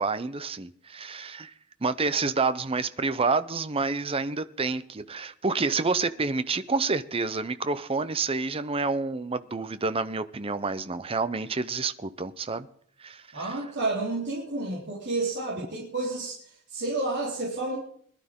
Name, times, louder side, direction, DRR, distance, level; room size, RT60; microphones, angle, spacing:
voice 1, 0.0-1.5 1.8-12.7 13.0-13.5, right 4 dB, 25° right, 0.6 m, -28 dB
voice 2, 13.3-17.8, right 2 dB, 50° right, 3.3 m, -30 dB
21.0 x 12.0 x 3.7 m
head